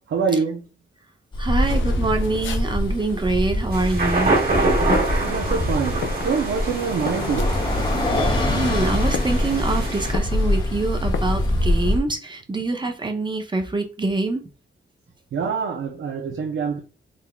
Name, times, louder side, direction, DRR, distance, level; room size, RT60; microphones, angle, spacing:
voice 1, 0.1-0.7 5.2-7.6 15.3-16.8, right 5 dB, 75° right, 0.5 m, -25 dB
Bus, 1.3-12.0, left 1 dB, 25° left, 1.0 m, -24 dB
voice 2, 1.4-4.4 8.5-14.4, right 3 dB, 25° right, 0.5 m, -25 dB
sound 1, 1.6-12.0, left 5 dB, 70° left, 0.4 m, -35 dB
sound 2, 3.7-10.1, right 2 dB, 50° right, 1.5 m, -26 dB
3.8 x 3.3 x 2.2 m
wide cardioid pair, 105°, 20 cm